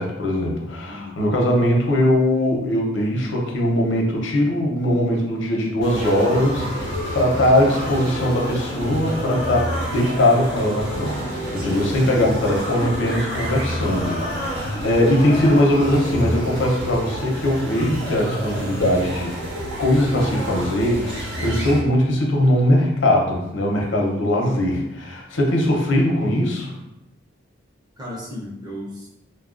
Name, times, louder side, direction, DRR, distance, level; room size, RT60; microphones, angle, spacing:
voice 1, 0.0-19.3 19.8-26.7, left 1 dB, 90° left, 0 dB, 0.6 m, -20 dB
voice 2, 0.8-1.3 28.0-29.1, left 1 dB, 20° right, -3 dB, 0.5 m, -36 dB
sound 1, 5.8-21.8, equal, 85° right, 0.9 m, -29 dB
sound 2, 5.9-15.8, left 1 dB, 30° left, 0.4 m, -34 dB
3.3 x 2.2 x 2.4 m, 0.91 s
head